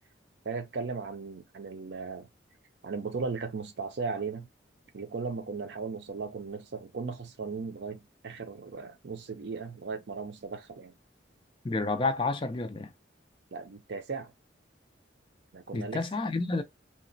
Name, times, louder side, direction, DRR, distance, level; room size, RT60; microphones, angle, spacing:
voice 1, 0.4-2.3 2.8-4.5 4.9-10.9 13.5-14.3 15.5-16.1, right 4 dB, 70° right, 0.5 m, -37 dB
voice 2, 11.6-12.9 15.7-16.6, left 3 dB, 25° left, 0.3 m, -30 dB
2.9 x 2.1 x 2.5 m
head